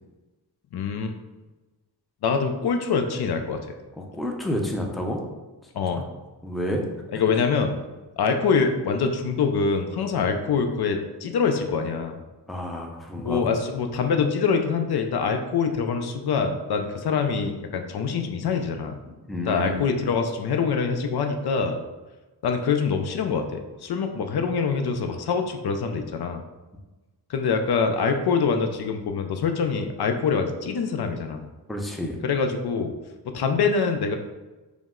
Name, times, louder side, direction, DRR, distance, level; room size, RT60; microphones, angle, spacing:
voice 1, 0.7-1.1 2.2-3.7 5.7-6.0 7.1-7.7 8.2-12.2 13.2-18.9 19.5-21.8 22.4-26.4 27.3-31.5 32.2-32.9 33.2-34.2, left 5 dB, 65° left, 5 dB, 0.5 m, -24 dB
voice 2, 4.0-5.2 5.9-6.0 6.4-6.8 7.3-7.4 12.5-13.5 19.3-19.8 31.7-32.2, equal, ahead, 1 dB, 0.5 m, -29 dB
5.0 x 2.1 x 3.6 m, 1.2 s
wide cardioid pair, 95°, 42 cm